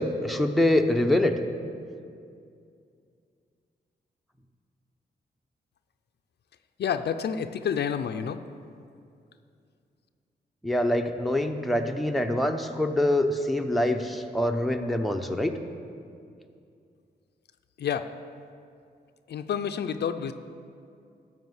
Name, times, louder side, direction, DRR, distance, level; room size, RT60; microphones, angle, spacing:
voice 1, 0.0-1.3 10.6-15.5, left 1 dB, ahead, 4 dB, 0.7 m, -25 dB
voice 2, 6.8-8.4 17.8-18.1 19.3-20.3, left 7 dB, 75° left, 9 dB, 0.5 m, -29 dB
13.0 x 4.9 x 7.9 m, 2.4 s
cardioid pair, 90°, 18 cm